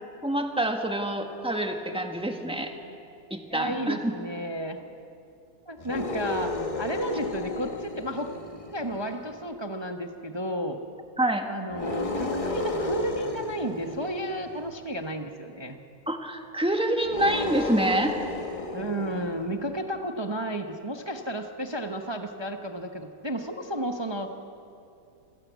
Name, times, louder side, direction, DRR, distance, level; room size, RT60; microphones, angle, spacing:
voice 1, 0.2-2.7 3.3-4.1 11.2-11.5 16.1-18.1, right 1 dB, 5° right, 4 dB, 1.6 m, -26 dB
voice 2, 3.5-4.8 5.7-6.5 6.8-8.3 8.7-10.8 11.5-15.8 18.7-24.5, right 1 dB, 20° right, 4 dB, 0.9 m, -32 dB
sound 1, 5.8-9.3 11.7-14.8 17.0-19.8, left 2 dB, 25° left, 1.3 m, -33 dB
26.5 x 16.5 x 8.2 m, 2.6 s
omnidirectional pair, 1.7 m